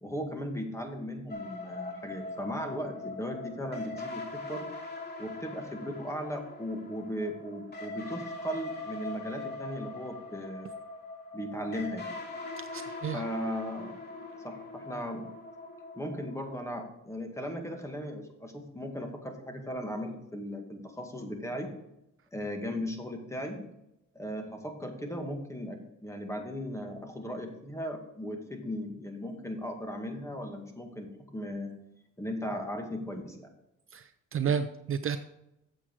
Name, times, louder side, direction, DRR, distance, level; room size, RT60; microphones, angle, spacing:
voice 1, 0.0-4.7 5.2-10.7 11.3-12.1 13.1-14.0 14.4-15.3 16.0-21.7 22.3-23.6 24.1-31.7 32.2-33.5, equal, 10° left, 3 dB, 2.0 m, -37 dB
sound 1, 1.3-16.8, left 2 dB, 35° left, 2.6 m, -42 dB
voice 2, 12.7-13.2 33.9-35.2, right 7 dB, 45° right, 11 dB, 0.6 m, -31 dB
8.3 x 7.5 x 4.8 m, 0.84 s
cardioid pair, 90°, 30 cm